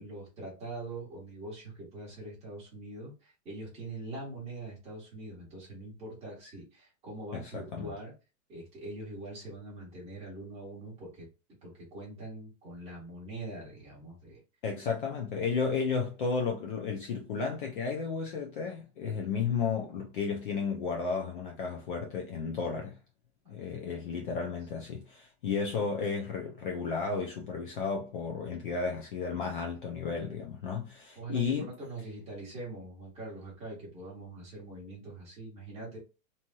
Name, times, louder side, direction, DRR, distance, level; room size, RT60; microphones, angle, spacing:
voice 1, 0.0-8.1 8.5-11.3 11.6-14.4 31.1-36.0, right 2 dB, 15° right, 1.1 m, -43 dB
voice 2, 7.4-7.9 14.6-23.0 23.5-31.7, left 5 dB, 40° left, 0.5 m, -33 dB
3.0 x 2.8 x 2.2 m
supercardioid pair, 170°, 43 cm